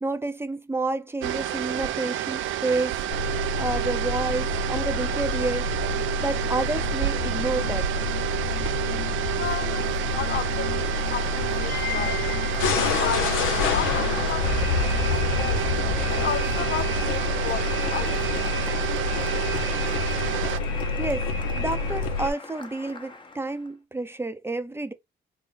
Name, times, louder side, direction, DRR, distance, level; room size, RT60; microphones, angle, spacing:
voice 1, 0.0-3.0 3.6-5.8 6.2-7.9 21.0-24.9, right 3 dB, 10° right, 0.6 m, -29 dB
sound 1, 1.2-20.6, right 12 dB, 75° right, 0.5 m, -30 dB
sound 2, 3.1-22.3, left 4 dB, 80° left, 0.8 m, -27 dB
voice 2, 9.3-12.2 12.7-15.7 16.1-18.5, left 9 dB, 55° left, 0.4 m, -34 dB
Applause, 9.3-23.7, left 3 dB, 25° left, 0.8 m, -42 dB
4.0 x 2.1 x 3.9 m
cardioid pair, 90°, 20 cm